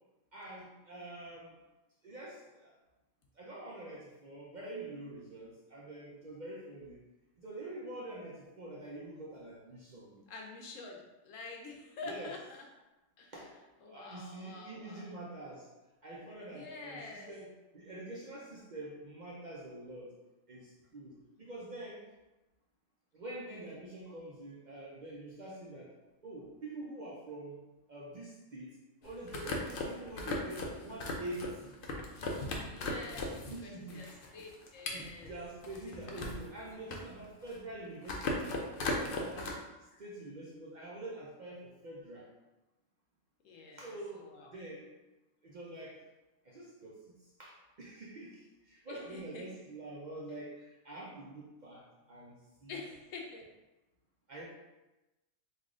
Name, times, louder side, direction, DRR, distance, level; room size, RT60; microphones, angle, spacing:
voice 1, 0.3-1.6 2.0-2.7 3.4-7.0 7.4-10.2 12.0-12.4 13.3-13.5 13.8-15.7 16.0-17.5 17.7-20.1 20.5-21.1 21.4-22.0 23.1-25.9 26.2-27.6 27.9-28.7 29.0-31.7 33.5-34.1 34.4-34.5 34.9-38.6 38.8-39.6 40.0-42.3 43.8-44.9 45.4-46.0 46.4-47.0 47.4-47.5 47.8-51.8 52.1-52.3 52.6-52.9 54.3-54.5, right 2 dB, 50° right, -5 dB, 0.6 m, -46 dB
voice 2, 10.3-12.6 13.2-13.3 13.8-15.1 16.4-17.3 32.1-34.1 34.3-35.3 39.9-40.0 43.4-43.9 44.1-44.5 48.9-49.4 52.7-53.5, left 3 dB, 80° left, 0 dB, 1.1 m, -47 dB
sound 1, 29.0-33.6 33.9-36.5 36.8-37.7 38.0-39.5, left 2 dB, 60° left, 0.6 m, -37 dB
3.4 x 2.4 x 3.6 m, 1.0 s
omnidirectional pair, 1.3 m